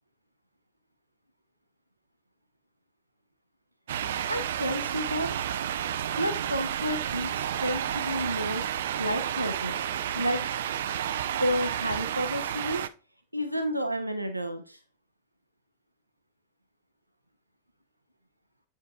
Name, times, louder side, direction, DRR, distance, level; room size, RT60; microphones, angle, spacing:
sound 1, 3.9-12.9, right 10 dB, 60° right, 0.3 m, -31 dB
voice 1, 4.3-5.4 6.2-8.6 9.0-9.8 10.1-10.5 11.4-12.9 13.3-14.8, equal, 85° right, 7 dB, 0.7 m, -31 dB
7.9 x 5.4 x 2.4 m, 0.33 s
figure-of-eight pair, 90°, 0 cm